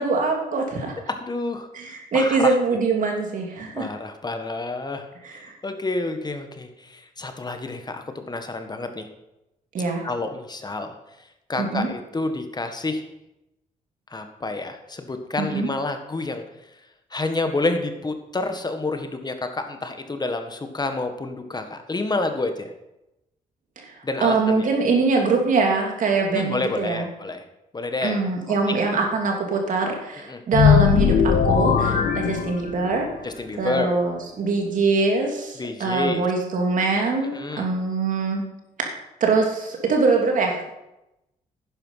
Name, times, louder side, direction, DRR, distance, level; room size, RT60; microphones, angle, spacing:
voice 1, 0.0-0.9 1.7-3.9 5.2-5.3 9.7-10.1 11.6-11.9 15.4-15.7 23.8-27.0 28.0-33.1 33.6-38.4 38.8-40.6, right 4 dB, 65° right, 2 dB, 3.0 m, -23 dB
voice 2, 1.1-2.6 3.8-9.1 10.0-13.1 14.1-16.4 16.7-16.8 17.1-22.7 24.0-24.7 26.3-27.4 27.7-28.2 28.7-28.8 30.3-30.4 33.2-34.0 35.6-36.2 37.3-37.7, left 2 dB, 30° left, 7 dB, 1.7 m, -29 dB
sound 1, 30.5-33.1, left 7 dB, 70° left, 1.4 m, -19 dB
11.0 x 9.7 x 5.8 m, 0.90 s
cardioid pair, 65°, 15 cm